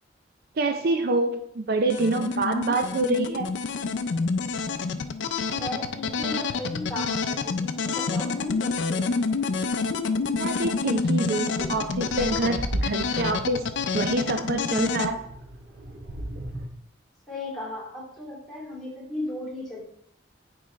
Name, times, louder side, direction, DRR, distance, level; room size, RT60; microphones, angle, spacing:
voice 1, 0.6-3.5 10.3-13.7 13.9-15.2, right 2 dB, 55° right, 7 dB, 0.5 m, -26 dB
sound 1, 1.9-15.1, left 4 dB, 80° left, 0.5 m, -28 dB
voice 2, 5.5-9.1 17.3-19.8, left 1 dB, ahead, -5 dB, 2.4 m, -36 dB
sound 2, 10.4-10.6 11.1-16.7, right 1 dB, 70° right, 1.1 m, -36 dB
9.5 x 4.7 x 3.1 m, 0.71 s
head